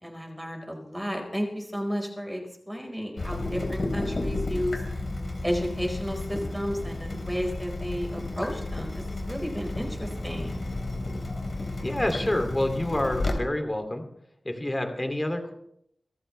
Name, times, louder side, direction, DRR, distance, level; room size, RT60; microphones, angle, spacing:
voice 1, 0.0-4.8 5.4-10.6, equal, 5° right, 2 dB, 4.5 m, -32 dB
Water tap faucet / Drip, 3.2-13.3, left 2 dB, 50° left, 3.6 m, -32 dB
voice 2, 11.8-14.0 14.4-15.5, left 1 dB, 20° left, 6 dB, 2.6 m, -28 dB
25.5 x 14.5 x 3.3 m, 0.72 s
wide cardioid pair, 90°, 0 cm